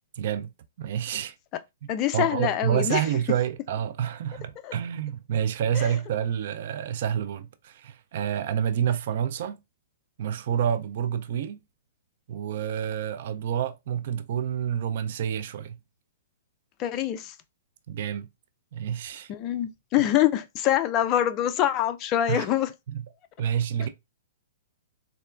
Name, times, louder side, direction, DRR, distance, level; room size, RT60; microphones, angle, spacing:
voice 1, 0.2-0.5 0.8-1.4 1.8-9.6 10.2-11.6 12.3-15.8 17.9-18.3 18.7-19.3 22.3-22.5 22.9-23.0 23.4-23.9, right 9 dB, 50° right, 0.3 m, -28 dB
voice 2, 1.9-3.0 4.6-4.7 5.7-5.9 16.8-17.3 19.3-22.7, left 12 dB, 30° left, 0.3 m, -25 dB
3.6 x 2.1 x 2.2 m
figure-of-eight pair, 110°, 0 cm